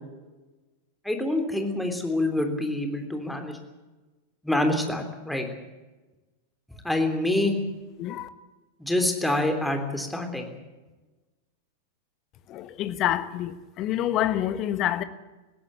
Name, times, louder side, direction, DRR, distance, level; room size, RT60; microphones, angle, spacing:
voice 1, 1.0-3.6 4.4-5.4 6.8-7.5 8.8-10.6, left 1 dB, 5° left, 3.4 m, -26 dB
voice 2, 8.0-8.3 12.5-15.0, left 12 dB, 35° left, 1.3 m, -27 dB
20.0 x 16.5 x 8.3 m
figure-of-eight pair, 90°, 0 cm